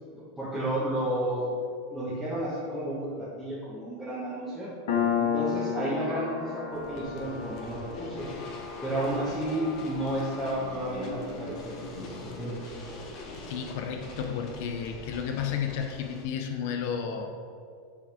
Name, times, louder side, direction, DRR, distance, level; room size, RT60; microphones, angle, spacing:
voice 1, 0.1-1.5 1.9-4.7 5.2-8.3 8.8-12.5, right 1 dB, ahead, -11 dB, 1.2 m, -32 dB
Piano, 4.9-12.0, left 7 dB, 75° left, 1.0 m, -33 dB
sound 1, 6.7-16.2, left 2 dB, 40° left, 1.0 m, -42 dB
voice 2, 13.4-17.3, left 7 dB, 60° left, 4 dB, 0.6 m, -32 dB
9.7 x 3.6 x 3.5 m, 2.3 s
supercardioid pair, 150°, 0 cm